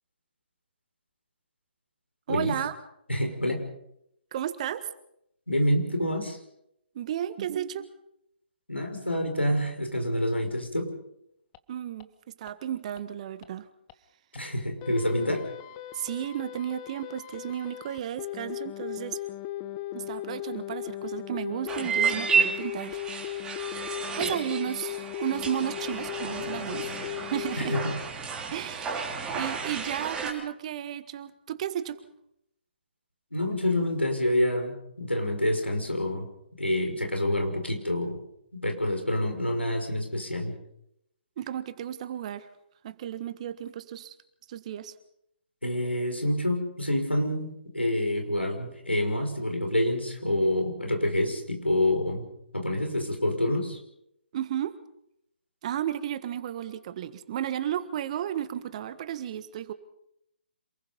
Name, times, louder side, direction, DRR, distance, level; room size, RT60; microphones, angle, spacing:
voice 1, 2.3-2.7 4.3-4.9 6.9-7.9 11.7-13.7 15.9-19.2 19.9-23.5 24.1-27.0 27.3-27.8 28.5-32.0 41.4-42.5 42.8-44.1 44.5-44.9 54.3-54.8 55.6-59.7, right 10 dB, 35° right, 12 dB, 1.5 m, -33 dB
voice 2, 3.1-3.6 5.5-6.4 8.7-10.9 14.3-15.4 27.6-27.8 33.3-36.3 36.6-38.2 38.5-40.5 45.6-52.2 52.5-53.8, left 1 dB, 90° left, 4 dB, 5.7 m, -27 dB
sound 1, 11.5-11.6 12.0-12.1 12.5-12.6 13.0-13.1 13.4-13.5 13.9-14.0 14.4-14.5 14.8-27.9, left 14 dB, 25° left, 1.1 m, -37 dB
sound 2, 21.7-30.3, right 5 dB, 10° right, 3.3 m, -31 dB
27.5 x 20.5 x 5.4 m, 0.77 s
figure-of-eight pair, 135°, 6 cm